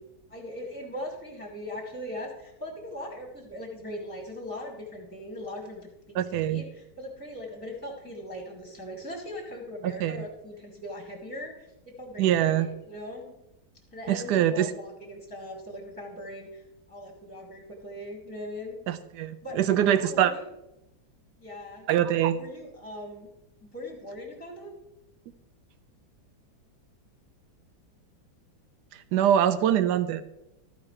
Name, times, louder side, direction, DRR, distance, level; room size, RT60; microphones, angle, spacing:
voice 1, 0.3-11.7 12.0-13.3 13.9-18.8 19.4-20.4 21.4-21.9 22.3-23.3 23.6-24.7, left 1 dB, 5° left, -1 dB, 1.9 m, -40 dB
voice 2, 6.1-6.6 9.8-10.2 12.2-12.7 14.1-14.7 18.9-20.3 21.9-22.4 29.1-30.2, right 10 dB, 70° right, 12 dB, 1.2 m, -24 dB
13.5 x 9.5 x 3.3 m, 0.90 s
omnidirectional pair, 2.1 m